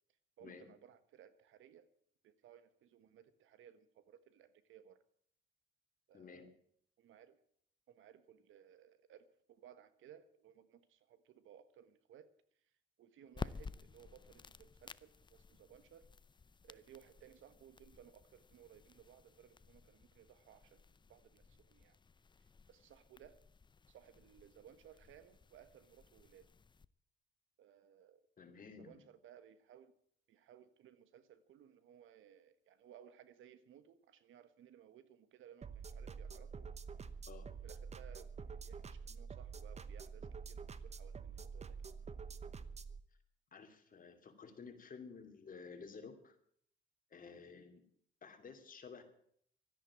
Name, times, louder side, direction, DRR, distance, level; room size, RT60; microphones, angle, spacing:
voice 1, 0.4-1.9 2.2-5.0 6.1-6.5 7.0-7.4 7.9-12.3 13.0-16.1 16.6-22.0 22.4-23.4 23.9-26.5 27.6-28.3 28.8-29.9 30.3-36.7 37.5-41.9 47.5-47.7, right 9 dB, 80° right, 13 dB, 1.3 m, -61 dB
voice 2, 6.1-6.5 28.4-29.0 37.3-37.5 43.5-46.4 47.1-47.9 48.2-49.0, left 5 dB, 45° left, 6 dB, 2.8 m, -53 dB
sound 1, 13.3-26.8, left 5 dB, 25° left, 0.5 m, -53 dB
sound 2, 35.6-43.0, right 5 dB, 35° right, 0.9 m, -47 dB
13.0 x 10.0 x 8.6 m, 0.66 s
cardioid pair, 90°, 20 cm